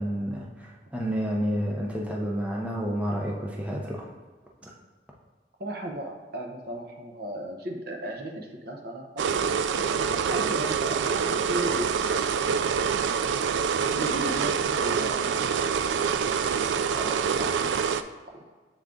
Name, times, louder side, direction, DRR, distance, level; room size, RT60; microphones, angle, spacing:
voice 1, 0.0-4.1 4.6-4.7, equal, 5° right, -2 dB, 0.6 m, -30 dB
voice 2, 5.6-9.3 9.8-12.3 12.8-13.1 13.8-16.1 16.9-17.6 18.3-18.5, right 1 dB, 55° right, 2 dB, 0.8 m, -36 dB
sound 1, 9.2-18.0, right 6 dB, 85° right, 0.3 m, -26 dB
7.1 x 3.8 x 3.6 m, 1.4 s
head